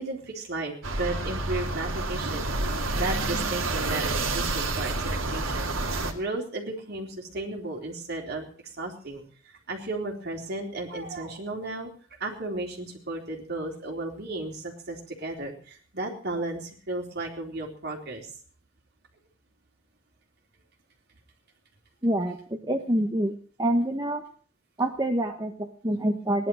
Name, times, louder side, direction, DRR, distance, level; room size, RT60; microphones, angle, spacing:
voice 1, 0.0-11.9 12.2-18.3, right 2 dB, 50° right, 1 dB, 4.0 m, -34 dB
sound 1, 0.8-6.1, right 2 dB, 75° right, 2.6 m, -29 dB
voice 2, 22.0-22.4 22.7-23.3 23.6-24.2 24.8-26.5, right 1 dB, 20° right, 3 dB, 1.1 m, -26 dB
18.0 x 11.5 x 6.3 m, 0.43 s
head